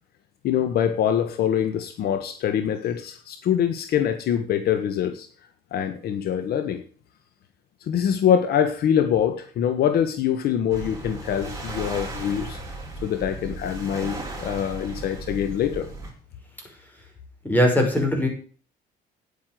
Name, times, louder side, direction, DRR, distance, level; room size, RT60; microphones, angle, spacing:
voice 1, 0.4-5.3 5.7-6.8 7.8-12.6 13.0-15.9, left 9 dB, 65° left, 9 dB, 1.5 m, -24 dB
sound 1, 10.7-16.1, right 2 dB, 20° right, 4.9 m, -36 dB
voice 2, 17.4-18.3, left 1 dB, 10° left, 2 dB, 5.8 m, -20 dB
9.9 x 8.8 x 7.7 m, 0.41 s
cardioid pair, 110°, 17 cm